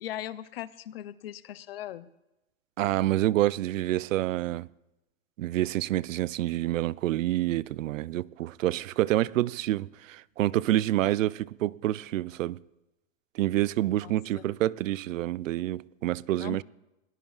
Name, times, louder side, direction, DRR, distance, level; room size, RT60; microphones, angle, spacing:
voice 1, 0.0-2.1 14.0-14.5 16.4-16.6, left 12 dB, 45° left, 0.6 m, -39 dB
voice 2, 2.8-4.7 5.4-12.6 13.4-16.6, right 15 dB, 75° right, 0.5 m, -27 dB
22.0 x 19.5 x 2.4 m
supercardioid pair, 165°, 40 cm